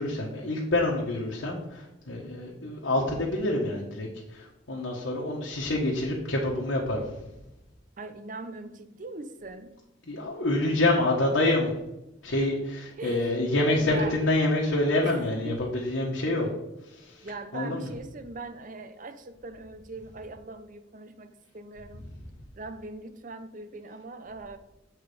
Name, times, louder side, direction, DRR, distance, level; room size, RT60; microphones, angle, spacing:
voice 1, 0.0-7.0 10.1-11.7 12.2-16.5 16.9-17.3 17.5-17.9, left 2 dB, 85° left, -3 dB, 1.3 m, -27 dB
voice 2, 8.0-9.7 13.0-13.3 13.8-14.2 15.0-15.2 15.4-15.6 17.2-22.1 22.6-24.6, right 3 dB, 45° right, 9 dB, 0.6 m, -41 dB
7.4 x 4.8 x 4.9 m, 0.92 s
head